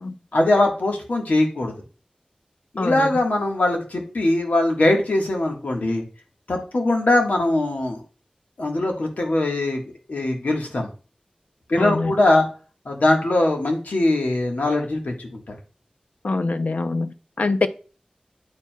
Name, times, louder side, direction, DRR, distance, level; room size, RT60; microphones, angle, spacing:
voice 1, 0.3-1.7 2.7-6.0 6.5-8.0 8.6-9.8 10.1-10.9 11.7-12.5 12.8-15.6, left 2 dB, 85° left, 1.4 m, -21 dB
voice 2, 2.8-3.1 11.8-12.1 16.2-17.7, left 3 dB, 70° left, 0.5 m, -24 dB
9.4 x 4.6 x 2.2 m
wide cardioid pair, 70°, 3 cm